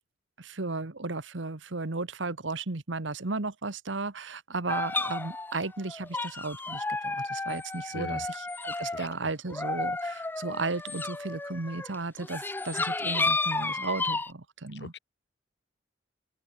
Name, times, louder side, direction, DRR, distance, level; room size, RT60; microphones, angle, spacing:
voice 1, 0.4-14.9, right 3 dB, 90° right, 1.5 m, -35 dB
sound 1, 4.7-9.1 9.5-14.3, left 3 dB, 10° left, 0.3 m, -32 dB
voice 2, 7.9-8.3 8.9-9.3 14.7-15.0, left 2 dB, 65° left, 2.2 m, -42 dB
head